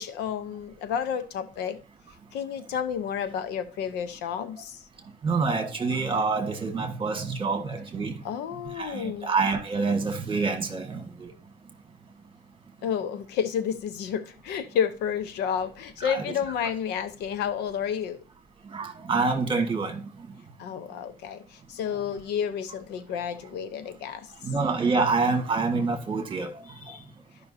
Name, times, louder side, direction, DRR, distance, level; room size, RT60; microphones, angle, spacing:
voice 1, 0.0-1.8 2.3-4.8 8.2-9.3 12.8-18.2 20.6-24.3, left 8 dB, 85° left, 0.8 m, -30 dB
voice 2, 5.2-8.2 8.8-11.3 16.0-16.2 18.7-20.1 24.4-26.5 26.8-27.0, right 4 dB, 30° right, 1.5 m, -27 dB
13.0 x 5.5 x 2.7 m
cardioid pair, 110°, 17 cm